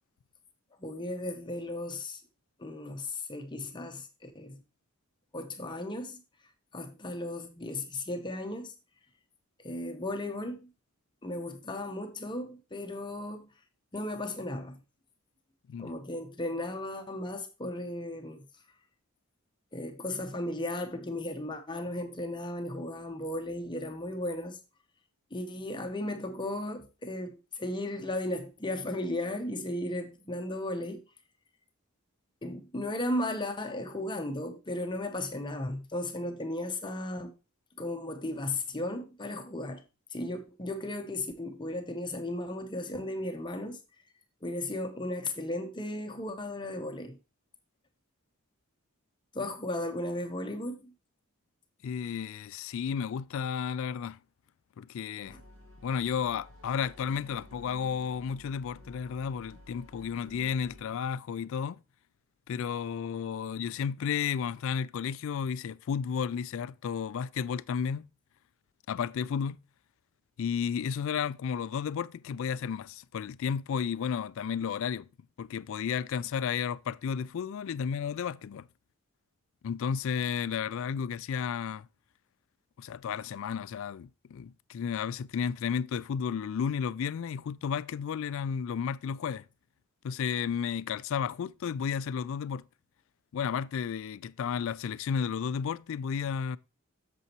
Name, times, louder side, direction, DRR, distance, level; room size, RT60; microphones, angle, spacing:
voice 1, 0.8-2.2 2.6-4.6 5.3-6.2 6.7-8.7 9.6-10.7 11.2-13.5 13.9-14.8 15.8-18.5 19.7-24.6 25.3-31.0 32.4-37.3 37.8-39.8 40.1-43.8 44.4-47.2 49.3-50.9, left 1 dB, 20° left, 0.8 m, -35 dB
voice 2, 51.8-54.2 54.8-55.4 55.8-61.8 62.5-68.1 68.9-69.6 70.4-75.1 75.4-78.7 79.6-81.9 82.8-89.5 90.0-92.6 93.3-96.6, left 7 dB, 60° left, 0.3 m, -32 dB
sound 1, 55.2-60.8, left 1 dB, 65° right, 2.2 m, -52 dB
8.2 x 6.9 x 2.9 m
head